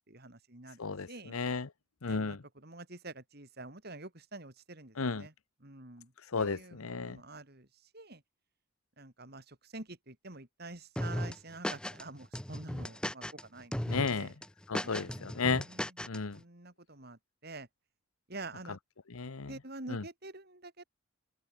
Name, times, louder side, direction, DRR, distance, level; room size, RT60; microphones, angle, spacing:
voice 1, 0.1-0.8 1.1-1.4 2.1-5.3 5.6-7.7 7.9-8.2 9.0-13.8 14.1-14.3 14.8-15.3 15.7-15.9 16.3-17.7 18.3-18.8 19.5-20.8, right 2 dB, 50° right, 3.5 m, -47 dB
voice 2, 0.8-1.7 2.0-2.4 5.0-5.3 6.2-7.2 13.9-14.3 14.7-15.6 16.1-16.4 19.1-19.5 19.9-20.0, left 4 dB, 90° left, 0.9 m, -33 dB
sound 1, 11.0-12.0 12.3-13.4 13.7-14.1 14.4-16.2, equal, 5° left, 0.8 m, -36 dB
open air
head